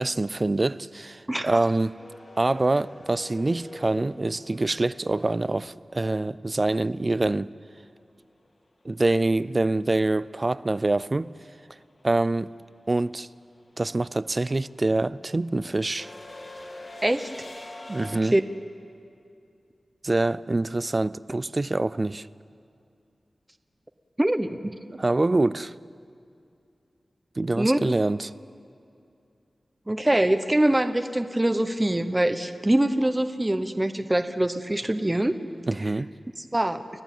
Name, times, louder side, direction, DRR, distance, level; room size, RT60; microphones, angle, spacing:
voice 1, 0.0-2.0 2.4-7.5 8.8-11.3 12.0-12.5 12.9-13.3 13.8-16.1 17.9-18.4 20.0-22.3 24.9-25.7 27.4-28.3 35.7-36.1, right 2 dB, 35° right, 0.5 m, -25 dB
voice 2, 1.3-1.6 17.0-17.3 18.3-18.4 24.2-24.7 27.5-27.8 29.9-35.4 36.5-36.8, right 1 dB, 15° right, 1.0 m, -23 dB
sound 1, 2.0-6.0 8.4-8.5 9.8-10.1 10.4-18.2, left 2 dB, 40° left, 2.7 m, -45 dB
29.5 x 15.0 x 9.2 m
wide cardioid pair, 95°, 0 cm